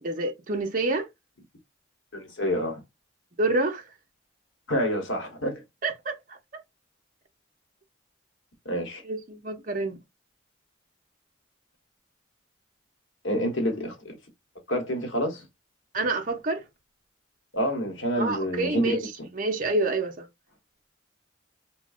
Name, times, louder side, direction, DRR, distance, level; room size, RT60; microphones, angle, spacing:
voice 1, 0.0-1.1 3.4-3.8 5.8-6.4 9.0-10.0 13.4-13.5 15.9-16.6 18.2-19.0 19.3-20.3, right 2 dB, 40° right, 0.6 m, -28 dB
voice 2, 2.1-2.8 4.7-5.6 8.6-9.0 13.2-14.2 14.7-15.4 17.5-19.3, equal, 75° left, 1.0 m, -28 dB
3.1 x 2.2 x 2.4 m
head